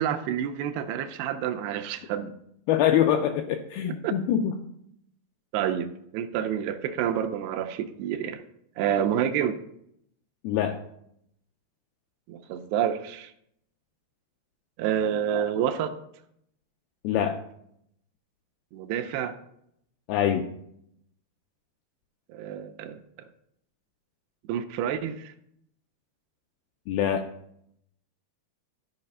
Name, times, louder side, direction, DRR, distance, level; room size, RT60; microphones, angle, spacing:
voice 1, 0.0-2.3 3.8-4.1 5.5-5.9 6.1-8.4 8.8-9.6 12.3-13.3 14.8-16.0 18.7-19.3 22.3-23.0 24.5-25.3, right 9 dB, 85° right, 8 dB, 2.6 m, -28 dB
voice 2, 2.7-4.6 10.4-10.8 17.0-17.4 20.1-20.5 26.9-27.3, left 10 dB, 85° left, 5 dB, 2.2 m, -24 dB
12.5 x 4.9 x 5.4 m, 0.74 s
omnidirectional pair, 4.9 m